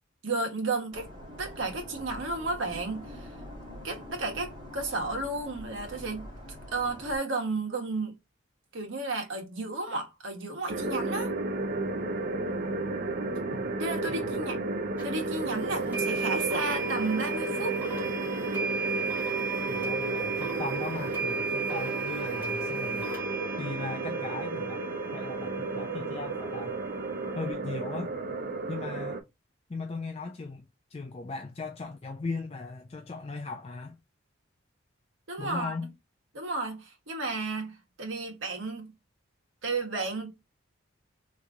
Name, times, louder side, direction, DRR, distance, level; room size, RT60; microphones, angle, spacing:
voice 1, 0.2-1.1 1.4-3.3 3.8-6.3 6.7-8.1 8.7-11.3 13.4-13.5 13.8-14.6 15.0-17.8 35.3-35.7 36.3-38.9 39.6-40.3, right 3 dB, 75° right, 1.3 m, -33 dB
sound 1, 0.9-7.2, left 1 dB, 25° right, 1.4 m, -44 dB
sound 2, 10.7-29.2, right 3 dB, 45° right, 0.5 m, -33 dB
voice 2, 14.1-14.6 19.7-23.1 23.6-24.8 25.1-26.8 27.3-28.1 28.7-29.2 29.7-34.0 35.4-35.9, left 3 dB, 30° left, 0.3 m, -38 dB
sound 3, 15.0-15.1 15.9-27.5, right 4 dB, 10° right, 1.2 m, -35 dB
3.6 x 3.0 x 2.6 m
head